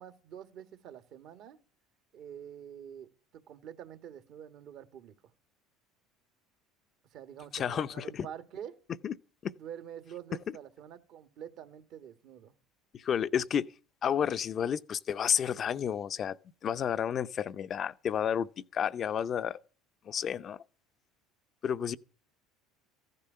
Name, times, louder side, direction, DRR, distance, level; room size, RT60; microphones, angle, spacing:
voice 1, 0.0-1.6 2.1-5.2 7.1-8.8 9.5-12.5, right 9 dB, 60° right, 1.6 m, -46 dB
voice 2, 7.5-8.1 9.0-9.1 9.4-9.5 12.9-13.7 14.0-16.4 16.6-19.6 20.1-20.6 21.6-22.0, left 8 dB, 45° left, 0.6 m, -31 dB
15.0 x 10.5 x 5.6 m
hypercardioid pair, 75°, 0 cm